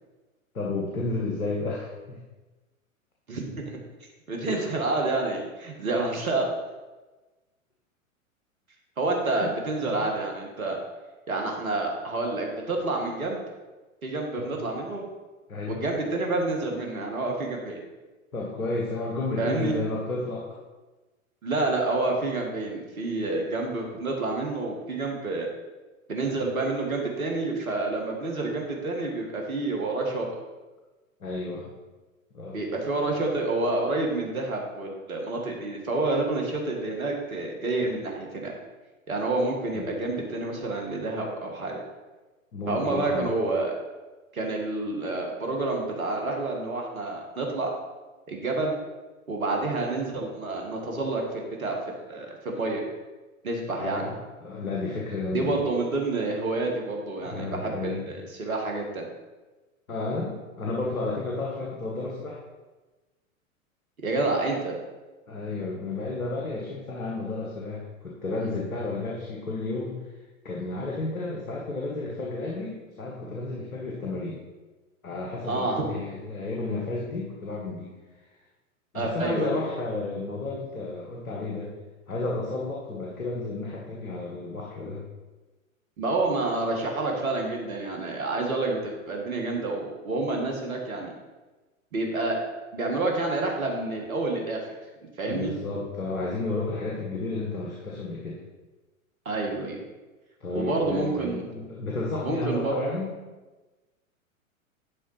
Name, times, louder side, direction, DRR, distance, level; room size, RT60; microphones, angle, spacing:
voice 1, 0.5-2.2 4.5-4.8 9.4-9.5 9.8-10.1 14.4-14.6 15.5-15.8 18.3-20.4 31.2-31.7 32.3-32.6 33.0-33.1 39.7-39.9 42.5-43.3 53.7-55.7 57.2-58.1 59.9-62.4 65.3-70.0 70.4-74.4 75.0-77.9 78.9-81.7 82.1-85.0 95.2-98.4 100.4-103.1, left 3 dB, 85° left, -3 dB, 1.8 m, -32 dB
voice 2, 3.3-3.8 4.3-6.5 9.0-10.8 11.3-13.4 14.0-15.0 15.7-17.8 19.4-19.7 21.4-25.5 26.1-30.4 32.5-38.5 39.1-41.8 42.7-43.7 44.3-47.7 48.3-48.7 49.3-52.8 53.4-54.1 55.3-59.1 64.0-64.8 75.4-76.0 78.9-79.6 86.0-91.2 91.9-92.4 92.7-94.6 95.2-95.5 99.3-99.8 100.5-101.4 102.2-102.7, right 2 dB, 80° right, 1 dB, 1.9 m, -28 dB
11.0 x 3.8 x 5.7 m, 1.2 s
hypercardioid pair, 105°, 41 cm